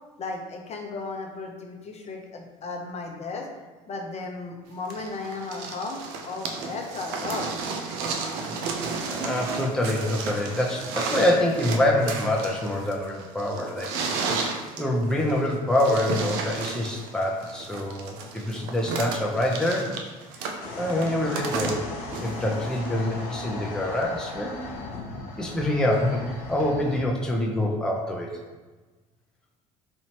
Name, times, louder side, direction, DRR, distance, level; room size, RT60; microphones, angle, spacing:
voice 1, 0.2-3.5 3.9-7.6, left 3 dB, 35° left, 2 dB, 0.8 m, -35 dB
sound 1, 4.9-23.0 24.0-24.1, right 4 dB, 65° right, 0.6 m, -33 dB
voice 2, 9.1-13.9 14.3-14.5 14.8-19.9 20.7-21.8 22.2-24.7 25.4-28.4, left 1 dB, 5° left, -1 dB, 0.6 m, -25 dB
sound 2, 20.6-27.0, left 2 dB, 85° left, 0.6 m, -37 dB
4.3 x 2.7 x 2.9 m, 1.3 s
hypercardioid pair, 70°, 18 cm